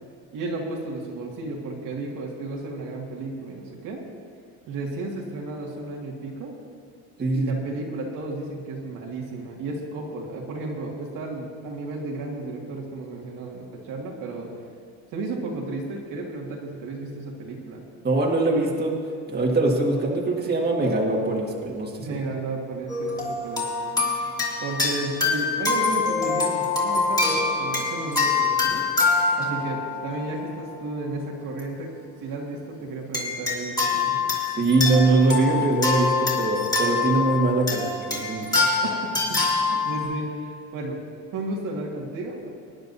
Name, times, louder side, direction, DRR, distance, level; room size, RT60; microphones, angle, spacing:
voice 1, 0.3-4.0 4.7-6.5 7.3-14.5 15.1-17.8 22.0-23.7 24.6-28.9 29.4-31.9 32.2-34.2 38.8-41.0 41.3-42.5, right 2 dB, 65° right, -2 dB, 2.2 m, -33 dB
voice 2, 7.2-7.5 18.0-19.0 19.3-22.1 34.6-38.7, right 2 dB, 30° right, -2 dB, 1.9 m, -22 dB
sound 1, 22.9-30.7 31.4-31.6 33.1-40.1, left 4 dB, 10° left, 2.8 m, -25 dB
22.5 x 10.0 x 2.8 m, 2.2 s
cardioid pair, 115°, 34 cm